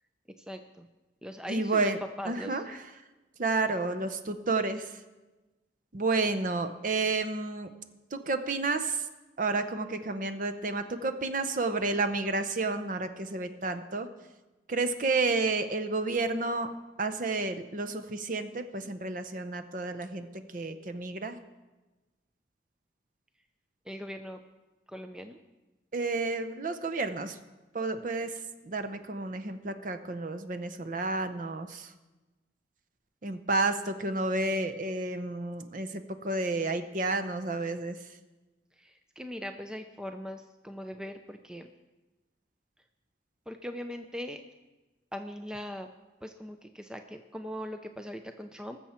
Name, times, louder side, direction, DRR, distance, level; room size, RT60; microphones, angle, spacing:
voice 1, 0.4-0.9 1.2-2.6 3.6-4.0 23.9-24.4 24.9-25.4 38.8-41.7 43.5-44.4 45.1-45.9 46.2-48.8, equal, 5° right, 6 dB, 0.4 m, -40 dB
voice 2, 1.5-2.0 2.2-2.6 3.4-5.0 5.9-7.7 8.1-9.0 9.4-14.1 14.7-16.7 17.0-20.3 20.5-21.4 25.9-27.4 27.7-28.4 28.6-31.9 33.2-38.0, right 3 dB, 45° right, 8 dB, 0.7 m, -31 dB
19.5 x 7.2 x 4.3 m, 1.1 s
head